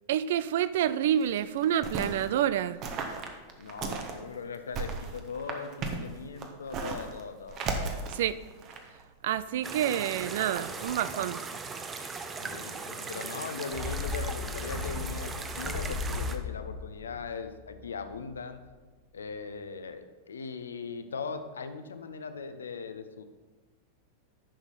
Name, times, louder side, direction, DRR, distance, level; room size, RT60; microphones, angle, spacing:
voice 1, 0.1-2.8 8.1-8.4 9.2-11.4, right 10 dB, 55° right, 16 dB, 0.3 m, -28 dB
sound 1, 1.1-2.3 2.8-4.2 4.5-7.2 7.5-9.0 10.1-11.1, right 4 dB, 35° right, 1.1 m, -36 dB
voice 2, 3.6-7.6 12.4-18.6 19.1-23.2, left 5 dB, 70° left, 10 dB, 0.6 m, -39 dB
sound 2, 9.6-16.4, right 4 dB, 20° right, 0.7 m, -39 dB
sound 3, 13.7-18.3 18.6-18.7, left 4 dB, 10° left, 1.1 m, -36 dB
10.0 x 6.3 x 4.1 m, 1.3 s
figure-of-eight pair, 90°, 0 cm